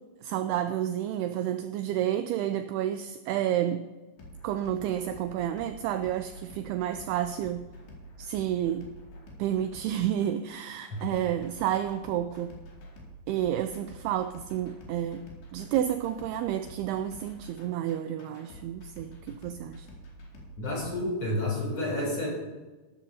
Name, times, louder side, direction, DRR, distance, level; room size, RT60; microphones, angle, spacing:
voice 1, 0.2-3.9 4.4-7.7 8.2-8.9 9.4-12.6 13.3-15.3 15.5-19.9, right 11 dB, 85° right, 9 dB, 2.3 m, -30 dB
sound 1, 4.2-20.9, right 1 dB, 90° left, 4.7 m, -48 dB
voice 2, 20.6-22.3, left 1 dB, 35° left, -3 dB, 4.5 m, -30 dB
15.5 x 12.5 x 2.8 m, 1.2 s
omnidirectional pair, 4.9 m